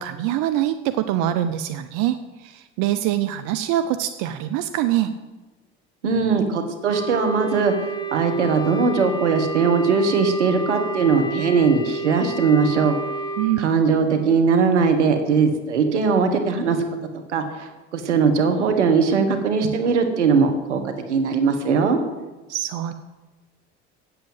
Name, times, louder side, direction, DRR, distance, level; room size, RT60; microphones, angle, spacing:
voice 1, 0.0-5.1 13.4-13.6 22.5-22.9, right 12 dB, 60° right, 10 dB, 0.7 m, -24 dB
voice 2, 6.0-7.7 8.1-13.0 13.6-16.8 17.3-20.8 21.1-22.0, right 5 dB, 90° right, 6 dB, 1.4 m, -20 dB
Wind instrument woodwind instrument, 6.8-13.5, right 3 dB, 15° left, 1.6 m, -30 dB
8.4 x 7.8 x 7.7 m, 1.2 s
hypercardioid pair, 70°, 34 cm